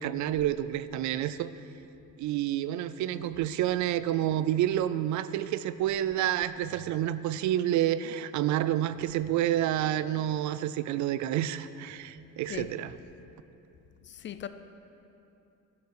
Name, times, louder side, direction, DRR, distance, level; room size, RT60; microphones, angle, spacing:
voice 1, 0.0-1.5 2.2-12.9, right 12 dB, 65° right, 14 dB, 0.4 m, -29 dB
voice 2, 14.1-14.5, left 10 dB, 40° left, 11 dB, 0.4 m, -39 dB
11.5 x 6.9 x 6.5 m, 2.8 s
cardioid pair, 160°, 31 cm